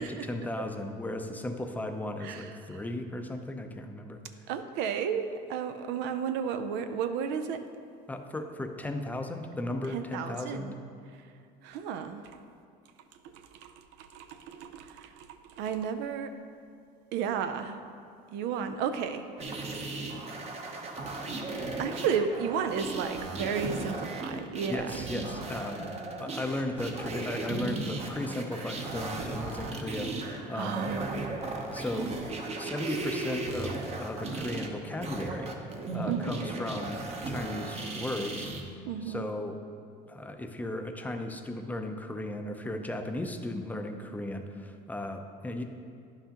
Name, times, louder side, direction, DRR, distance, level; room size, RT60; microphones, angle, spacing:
voice 1, 0.0-4.2 8.1-10.7 24.7-25.9 26.2-30.9 31.7-32.1 32.6-35.5 35.9-37.0 37.2-38.5 39.0-39.6 40.1-45.6, left 1 dB, 10° left, 5 dB, 0.5 m, -36 dB
voice 2, 4.5-7.6 9.9-10.7 11.6-12.2 13.2-13.3 13.6-13.7 14.0-15.3 15.6-16.3 17.1-17.8 18.3-19.6 21.8-24.9 30.5-31.3 36.1-36.5 38.9-39.3, right 7 dB, 85° right, 8 dB, 0.5 m, -33 dB
sound 1, 19.4-38.6, right 2 dB, 35° right, 0.8 m, -36 dB
10.5 x 5.7 x 2.9 m, 2.3 s
cardioid pair, 115°, 18 cm